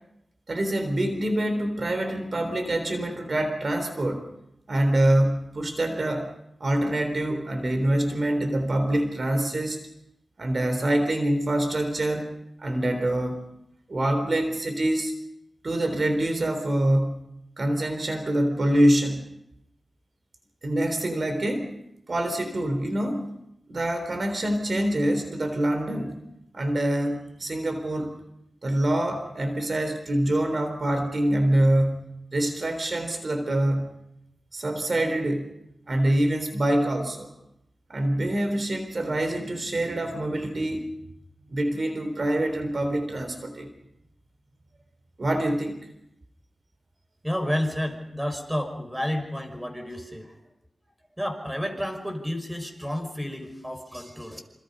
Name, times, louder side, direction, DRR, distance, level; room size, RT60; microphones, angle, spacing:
voice 1, 0.5-4.3 4.7-6.3 6.6-9.8 10.4-12.3 12.6-13.4 13.9-15.1 15.6-17.3 17.6-19.2 20.6-21.7 22.1-23.3 23.7-26.2 26.5-28.1 28.6-34.0 34.5-35.5 35.9-37.3 37.9-40.9 41.5-43.7 45.2-45.8, right 1 dB, 55° right, 7 dB, 3.8 m, -25 dB
voice 2, 47.2-50.3 51.2-54.4, equal, 10° right, 6 dB, 5.3 m, -30 dB
28.0 x 28.0 x 5.5 m, 0.82 s
wide cardioid pair, 70°, 0 cm